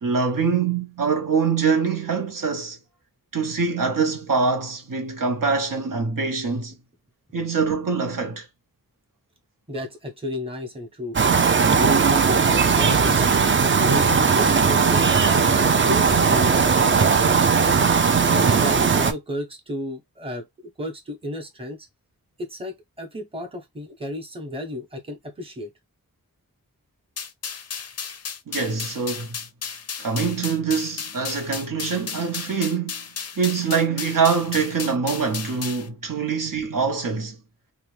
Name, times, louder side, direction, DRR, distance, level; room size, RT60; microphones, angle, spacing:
voice 1, 0.0-2.8 3.3-6.7 7.3-8.5 28.5-29.4 30.0-33.1 33.4-37.4, right 5 dB, 70° right, 0.8 m, -24 dB
voice 2, 9.7-11.2 11.7-17.6 18.3-20.5 20.8-21.9 22.4-25.7, left 1 dB, 15° right, 0.8 m, -32 dB
sound 1, 11.1-19.1, right 5 dB, 35° right, 0.4 m, -18 dB
sound 2, 27.2-35.9, left 6 dB, 45° left, 0.4 m, -34 dB
2.7 x 2.1 x 3.2 m
wide cardioid pair, 85°, 34 cm